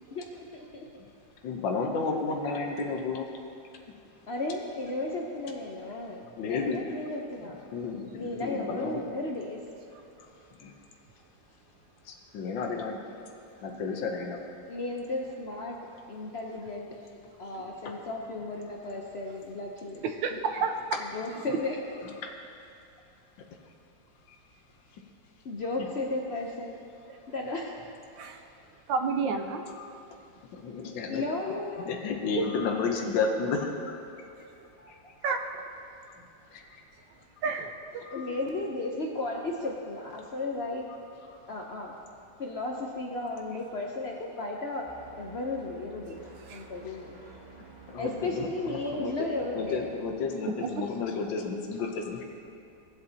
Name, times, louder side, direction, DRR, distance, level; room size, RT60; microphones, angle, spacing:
voice 1, 0.1-0.9 4.3-7.6 8.1-9.6 14.7-15.8 16.1-16.9 17.4-20.0 20.3-20.4 21.0-21.8 25.4-26.8 27.3-27.8 31.1-31.9 34.8-35.1 38.1-40.9 41.5-41.9 42.4-44.9 45.2-46.2 46.5-47.2 48.0-49.9, left 2 dB, 60° left, -1 dB, 0.6 m, -34 dB
voice 2, 1.4-3.3 6.4-7.0 7.7-9.0 10.6-10.7 12.1-13.0 13.6-14.4 17.8-17.9 21.5-21.6 22.0-22.3 24.3-24.4 25.8-25.9 29.7-29.9 30.5-31.2 31.8-34.2 34.9-35.0 36.2-36.3 36.5-36.8 38.0-38.3 41.3-41.4 47.9-49.1 49.5-52.2, left 4 dB, 85° left, 2 dB, 1.6 m, -32 dB
voice 3, 20.0-20.8 28.2-28.4 28.9-29.6 32.4-32.5 35.2-35.4 37.4-38.0 46.5-46.6, right 5 dB, 85° right, 5 dB, 1.4 m, -30 dB
sound 1, 44.9-49.9, right 5 dB, 25° right, 1.2 m, -51 dB
17.5 x 7.9 x 2.8 m, 2.6 s
omnidirectional pair, 2.0 m